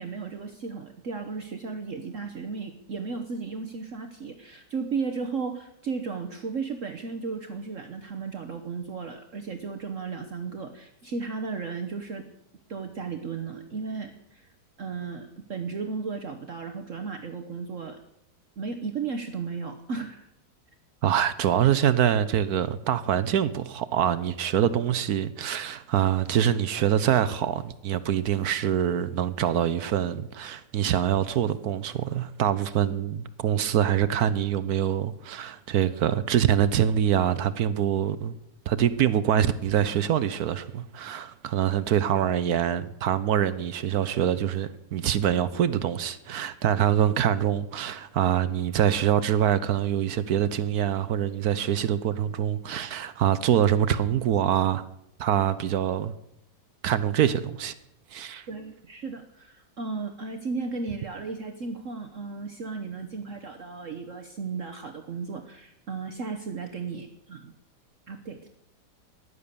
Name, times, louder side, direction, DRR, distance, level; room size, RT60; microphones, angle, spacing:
voice 1, 0.0-12.3 12.7-14.5 14.8-18.0 18.6-20.3 58.5-67.5 68.1-68.4, right 4 dB, 50° right, 1.3 m, -35 dB
voice 2, 21.0-38.3 38.7-54.8 55.2-56.1 56.8-57.7 58.1-58.5, right 10 dB, 65° right, 1.1 m, -25 dB
15.0 x 11.5 x 6.8 m
omnidirectional pair, 1.9 m